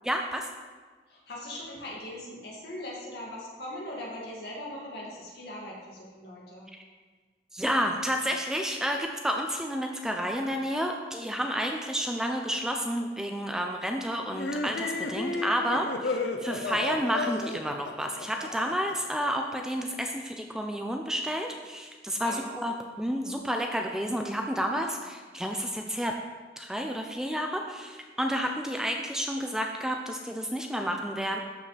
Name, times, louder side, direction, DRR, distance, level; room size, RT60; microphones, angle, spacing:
voice 1, 0.0-0.5 7.5-26.1 26.6-31.4, equal, 5° right, 3 dB, 0.4 m, -30 dB
voice 2, 1.1-6.7 15.2-15.4 22.2-22.5, left 1 dB, 65° left, -4 dB, 2.1 m, -40 dB
sound 1, 14.3-18.9, left 3 dB, 90° left, 0.7 m, -33 dB
13.0 x 5.4 x 3.3 m, 1.4 s
head